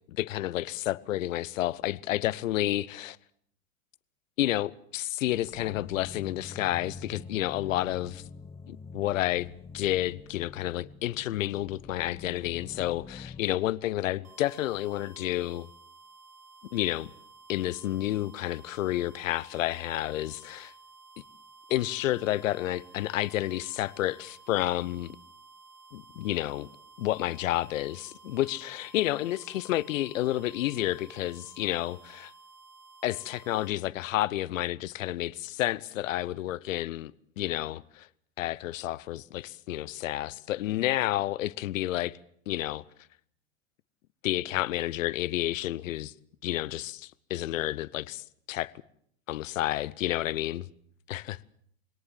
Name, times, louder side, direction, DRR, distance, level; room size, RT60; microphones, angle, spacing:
voice 1, 0.1-3.2 4.4-8.2 8.7-15.7 16.7-17.1 17.5-20.7 21.7-25.2 25.9-26.7 27.0-32.3 33.0-38.1 38.4-42.2 42.5-42.8 44.2-46.1 46.4-48.7 49.3-50.6 51.1-51.4, left 15 dB, 65° left, 1.0 m, -30 dB
sound 1, 5.5-13.4, left 5 dB, 15° left, 1.0 m, -46 dB
sound 2, 14.2-33.7, right 4 dB, 85° right, 3.4 m, -54 dB
24.0 x 18.0 x 7.5 m
hypercardioid pair, 100°, 42 cm